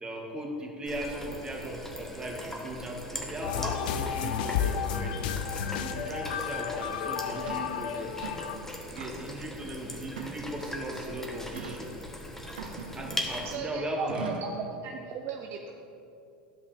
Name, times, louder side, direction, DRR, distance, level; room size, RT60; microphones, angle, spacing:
voice 1, 0.0-5.3 5.8-8.3 8.9-11.9 12.9-14.3, right 1 dB, 15° right, -1 dB, 1.7 m, -38 dB
sound 1, 0.8-13.6, left 1 dB, 5° left, 1.2 m, -40 dB
sound 2, 3.4-8.6, left 8 dB, 70° left, 0.5 m, -32 dB
sound 3, 6.8-6.9 7.5-7.7 8.1-8.5 9.0-9.4 10.1-10.8 11.6-11.8 12.6-13.4 14.1-14.6, right 5 dB, 80° right, 0.8 m, -41 dB
voice 2, 13.4-14.5 14.8-15.7, right 6 dB, 50° right, 2 dB, 0.6 m, -36 dB
12.5 x 5.4 x 3.4 m, 2.6 s
hypercardioid pair, 85°, 5 cm